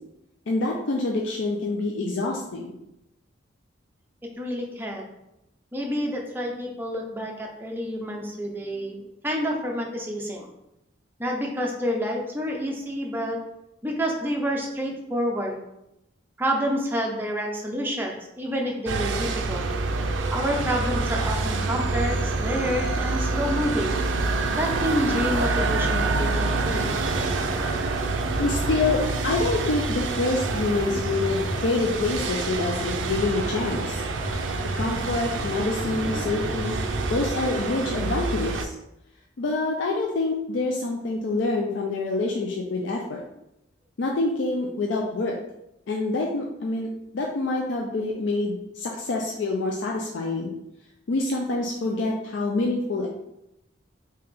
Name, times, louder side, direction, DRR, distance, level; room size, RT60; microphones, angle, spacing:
voice 1, 0.5-2.7 28.4-34.0 34.8-36.8 37.1-38.7 39.4-43.2 44.0-45.3 45.9-46.9 47.1-50.5 51.1-53.1, left 2 dB, 70° left, -1 dB, 0.4 m, -26 dB
voice 2, 4.4-5.0 5.7-10.5 11.2-13.4 13.8-15.6 16.4-19.6 20.3-24.0 24.5-26.9, equal, 10° right, 0 dB, 0.5 m, -28 dB
sound 1, 18.9-38.6, right 3 dB, 70° right, 0.4 m, -27 dB
sound 2, 26.8-37.2, equal, 20° left, 1.2 m, -35 dB
3.3 x 2.8 x 3.5 m, 0.86 s
head